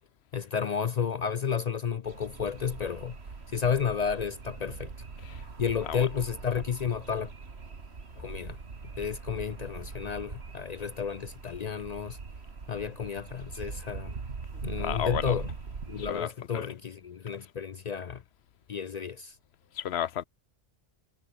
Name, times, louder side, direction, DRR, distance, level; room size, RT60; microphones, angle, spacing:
voice 1, 0.3-3.2 3.5-4.9 5.6-7.3 8.2-8.6 9.0-12.2 12.7-14.1 14.6-15.5 15.9-18.2 18.7-19.4, left 7 dB, 50° left, 0.5 m, -32 dB
sound 1, 2.1-16.2, right 4 dB, 75° right, 2.2 m, -41 dB
voice 2, 14.8-15.3 16.0-16.7 19.8-20.2, left 10 dB, 80° left, 1.0 m, -33 dB
omnidirectional pair, 1.1 m